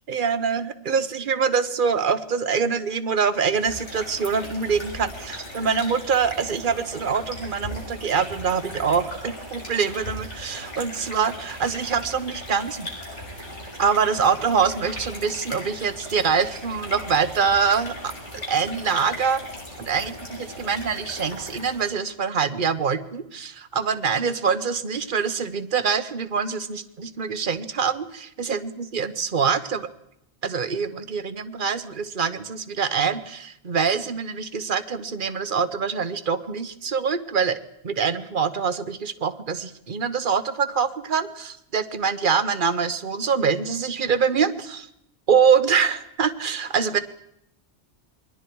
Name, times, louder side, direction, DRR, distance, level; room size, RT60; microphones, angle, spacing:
voice 1, 0.1-12.9 13.8-19.4 19.8-29.9 30.4-37.6 37.8-44.9 45.3-47.0, right 6 dB, 45° right, 11 dB, 1.2 m, -24 dB
sound 1, 3.4-22.0, equal, 80° left, 6.6 m, -38 dB
28.0 x 22.5 x 4.7 m, 0.78 s
omnidirectional pair, 1.2 m